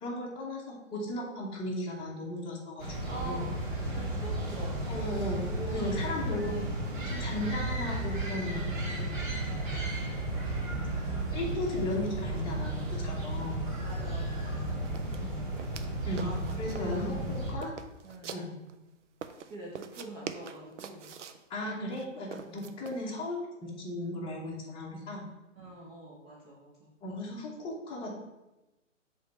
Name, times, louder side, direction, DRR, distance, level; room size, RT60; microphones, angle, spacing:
voice 1, 0.0-3.5 4.9-5.5 5.7-6.6 7.0-9.1 11.0-13.6 16.1-16.3 16.6-17.7 18.3-18.5 21.5-25.2 27.0-28.1, left 1 dB, 15° left, -4 dB, 1.0 m, -36 dB
sound 1, 2.8-17.5, right 1 dB, 40° right, 1.6 m, -34 dB
voice 2, 3.1-4.9 5.4-6.1 8.5-8.9 9.5-10.2 13.8-14.9 16.2-17.1 18.0-18.4 19.5-21.2 22.4-22.8 25.5-26.9, right 1 dB, 20° right, -5 dB, 0.9 m, -45 dB
sound 2, 13.9-14.0 14.3-14.5 14.9-15.9 16.2-17.0 17.3-18.8 19.2-21.4 21.9-23.0, right 7 dB, 65° right, 0.6 m, -44 dB
7.3 x 3.5 x 4.2 m, 1.0 s
hypercardioid pair, 140°, 39 cm